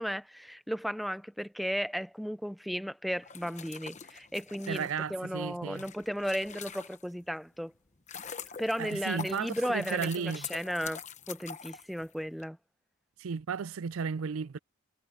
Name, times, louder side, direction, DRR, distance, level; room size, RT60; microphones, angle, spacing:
voice 1, 0.0-7.7 8.6-11.0 11.3-12.6, equal, ahead, 0.5 m, -35 dB
sound 1, 3.2-7.3 7.7-12.4, left 7 dB, 35° left, 1.0 m, -45 dB
voice 2, 4.7-5.8 8.8-10.5 13.2-14.6, right 6 dB, 70° right, 0.4 m, -34 dB
head